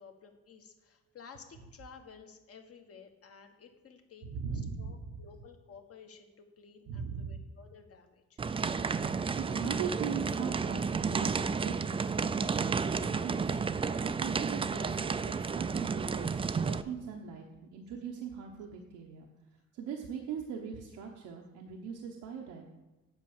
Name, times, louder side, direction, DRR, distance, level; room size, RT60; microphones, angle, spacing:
voice 1, 0.0-4.3 4.5-8.4, left 6 dB, 50° left, 6 dB, 1.3 m, -54 dB
voice 2, 4.2-5.2 6.9-7.4 9.3-17.4 17.7-19.3 19.7-22.7, right 6 dB, 90° right, 1 dB, 1.0 m, -40 dB
sound 1, 8.4-16.8, right 5 dB, 20° right, 0.3 m, -32 dB
8.0 x 5.6 x 7.0 m, 1.1 s
cardioid pair, 90°, 30 cm